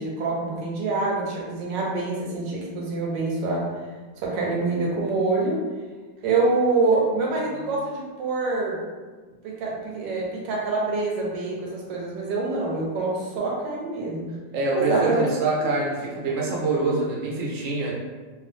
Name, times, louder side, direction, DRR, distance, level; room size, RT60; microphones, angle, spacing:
voice 1, 0.0-3.7 4.2-5.6 6.2-8.8 9.4-14.3 14.7-15.2 15.6-15.7, right 3 dB, 80° right, -2 dB, 1.4 m, -26 dB
voice 2, 14.5-17.9, right 2 dB, 60° right, -3 dB, 0.7 m, -25 dB
2.9 x 2.4 x 2.6 m, 1.4 s
omnidirectional pair, 1.9 m